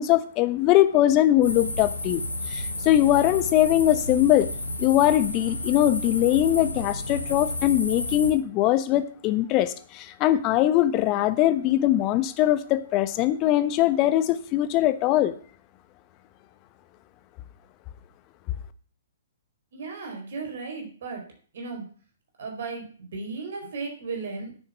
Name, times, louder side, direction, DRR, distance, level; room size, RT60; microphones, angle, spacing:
voice 1, 0.0-4.5 4.8-15.4, left 13 dB, 30° left, 12 dB, 1.2 m, -21 dB
sound 1, 1.4-8.3, left 1 dB, 85° left, 2.6 m, -32 dB
voice 2, 19.7-21.2 21.5-21.9 22.4-24.6, right 4 dB, 60° right, 2 dB, 4.4 m, -35 dB
10.0 x 7.1 x 8.5 m, 0.43 s
figure-of-eight pair, 120°, 0 cm